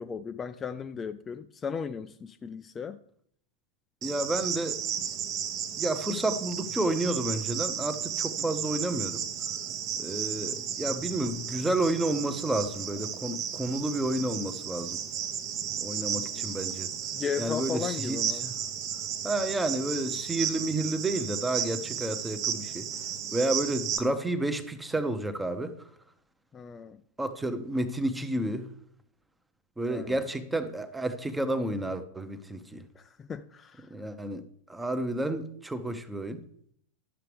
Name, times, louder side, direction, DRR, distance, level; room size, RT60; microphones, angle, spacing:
voice 1, 0.0-3.0 8.5-8.6 10.4-10.7 16.1-16.5 17.1-18.5 26.5-27.0 29.9-30.2 33.0-33.9, left 6 dB, 20° left, 0.4 m, -36 dB
voice 2, 4.0-4.8 5.7-9.2 10.0-15.0 15.8-16.9 17.4-18.5 19.2-22.9 23.3-25.8 27.2-28.7 29.8-32.8 33.9-36.4, right 1 dB, 5° right, 0.8 m, -30 dB
Cricket, 4.0-24.0, right 9 dB, 40° right, 0.9 m, -34 dB
12.5 x 6.7 x 3.3 m
figure-of-eight pair, 90°, 0 cm